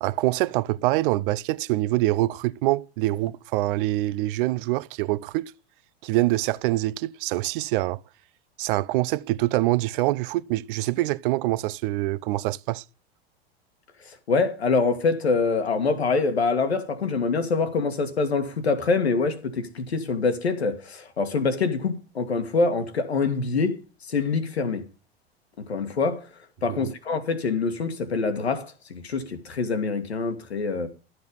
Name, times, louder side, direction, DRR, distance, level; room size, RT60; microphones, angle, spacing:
voice 1, 0.0-5.5 6.0-8.0 8.6-12.8 26.7-26.9, right 18 dB, 60° right, 0.7 m, -25 dB
voice 2, 14.1-23.8 24.1-24.9 25.6-26.3 26.6-30.9, left 4 dB, 90° left, 1.9 m, -25 dB
12.0 x 8.0 x 5.3 m
hypercardioid pair, 95°, 31 cm